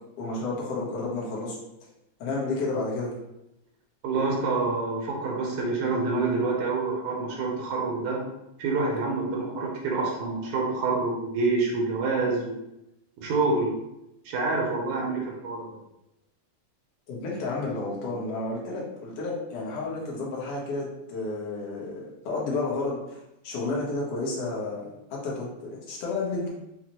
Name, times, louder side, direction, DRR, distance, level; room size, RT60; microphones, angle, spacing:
voice 1, 0.2-1.6 2.2-3.1 17.1-23.2 23.4-26.5, left 3 dB, 65° left, -4 dB, 1.6 m, -31 dB
voice 2, 4.0-8.2 8.6-12.5 13.2-13.8 14.3-15.7, right 3 dB, 75° right, -2 dB, 2.0 m, -27 dB
6.1 x 2.1 x 2.9 m, 0.87 s
omnidirectional pair, 3.6 m